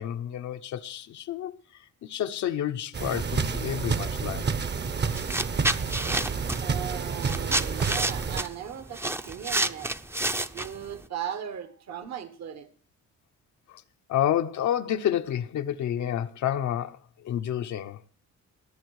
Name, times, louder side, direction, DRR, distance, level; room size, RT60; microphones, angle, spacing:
voice 1, 0.0-1.6 2.0-4.5 14.1-17.0 17.2-18.0, left 10 dB, 70° left, 0.9 m, -29 dB
sound 1, 2.9-8.4, right 5 dB, 35° right, 0.9 m, -29 dB
sound 2, 5.1-11.0, right 1 dB, 10° right, 0.6 m, -29 dB
voice 2, 6.1-10.2 10.4-12.7, right 9 dB, 60° right, 1.3 m, -38 dB
19.0 x 7.4 x 4.8 m
cardioid pair, 90°, 30 cm